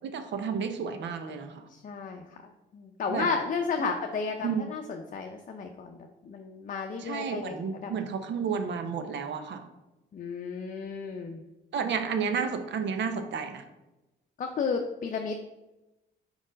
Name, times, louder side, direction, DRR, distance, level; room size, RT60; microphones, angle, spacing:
voice 1, 0.0-1.7 3.1-3.3 3.8-3.9 4.4-4.7 7.0-9.6 11.7-13.6, right 6 dB, 65° right, 7 dB, 0.8 m, -31 dB
voice 2, 1.7-7.9 10.1-11.4 14.4-15.4, left 5 dB, 40° left, 3 dB, 0.6 m, -33 dB
4.8 x 4.3 x 5.1 m, 0.99 s
cardioid pair, 90°, 20 cm